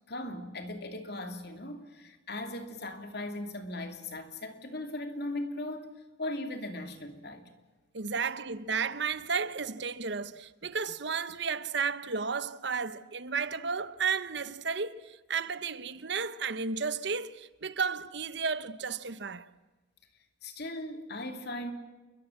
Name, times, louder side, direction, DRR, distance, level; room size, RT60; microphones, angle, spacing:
voice 1, 0.1-7.5 20.4-21.7, left 1 dB, 55° left, 3.0 m, -38 dB
voice 2, 7.9-19.5, right 5 dB, 55° right, 0.9 m, -33 dB
28.5 x 22.5 x 7.4 m
head